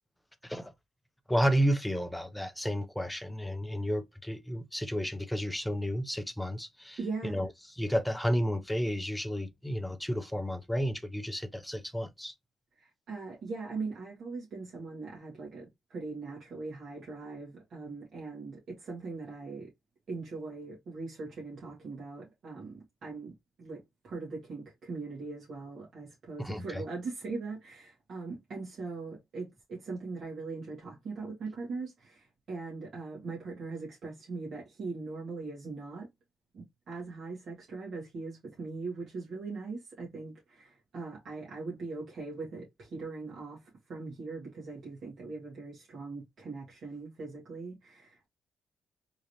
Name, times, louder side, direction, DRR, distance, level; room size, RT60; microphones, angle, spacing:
voice 1, 1.3-12.3 26.4-26.8, equal, 5° left, 0.5 m, -32 dB
voice 2, 7.0-7.5 12.8-19.7 20.1-36.1 36.5-48.3, right 3 dB, 55° right, 1.8 m, -40 dB
3.7 x 3.2 x 2.8 m
cardioid pair, 150°, 0 cm